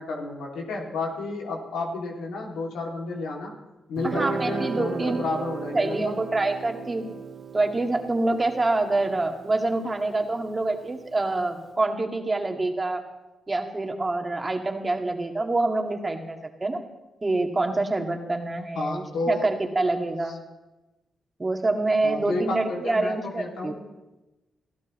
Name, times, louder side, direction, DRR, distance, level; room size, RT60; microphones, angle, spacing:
voice 1, 0.0-3.5 3.9-6.2 18.7-19.5 22.0-23.8, left 3 dB, 90° left, 0 dB, 2.7 m, -31 dB
voice 2, 4.0-5.2 5.7-7.1 7.5-13.0 13.5-16.9 17.2-20.4 21.4-23.7, right 2 dB, 30° right, 3 dB, 2.1 m, -26 dB
Guitar, 4.0-11.1, right 5 dB, 55° right, 2.0 m, -36 dB
25.0 x 15.0 x 3.2 m, 1.0 s
cardioid pair, 65°, 0 cm